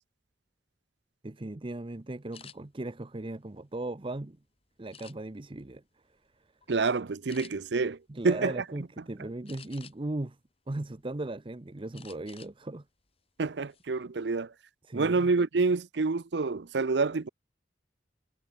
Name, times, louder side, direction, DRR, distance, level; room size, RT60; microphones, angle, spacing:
voice 1, 1.2-4.4 4.8-5.8 8.1-10.4 10.7-12.8 14.8-15.3, right 2 dB, 30° right, 0.7 m, -37 dB
sound 1, 2.3-2.6 3.2-4.2 4.9-5.5 6.0-6.3 6.6-6.8 7.3-7.5 9.5-10.2 10.7-11.4 11.9-12.5 12.9-13.1 13.5-13.8, left 7 dB, 35° left, 1.7 m, -51 dB
voice 2, 6.7-8.0 8.2-8.5 13.4-14.5 14.9-17.3, right 4 dB, 75° right, 0.7 m, -27 dB
head